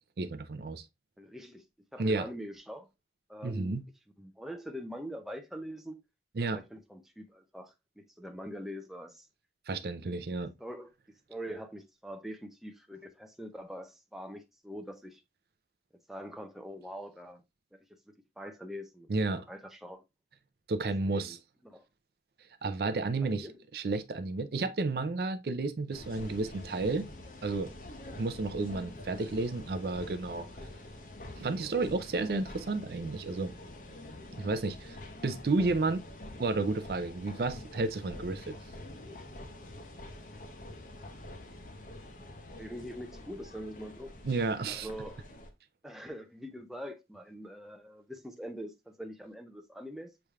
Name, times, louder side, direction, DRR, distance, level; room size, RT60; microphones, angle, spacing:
voice 1, 0.2-0.8 2.0-2.3 3.4-3.8 6.4-6.6 9.7-10.5 19.1-19.5 20.7-21.4 22.6-23.5 23.7-27.1 27.4-27.7 28.2-30.5 31.4-33.5 34.4-35.0 35.2-36.0 36.4-38.5 44.2-44.9, right 3 dB, 60° right, 0.4 m, -31 dB
voice 2, 1.2-1.6 1.9-2.9 3.3-3.8 4.2-6.0 6.5-9.3 10.4-10.9 11.3-15.2 16.1-17.4 17.7-17.8 18.1-20.0 21.0-21.4 21.6-21.8 23.2-23.5 31.8-31.9 42.6-44.1 44.7-45.2 45.8-50.1, equal, ahead, 0.5 m, -43 dB
sound 1, 25.9-45.5, left 1 dB, 45° left, 0.7 m, -46 dB
6.9 x 3.2 x 2.3 m
head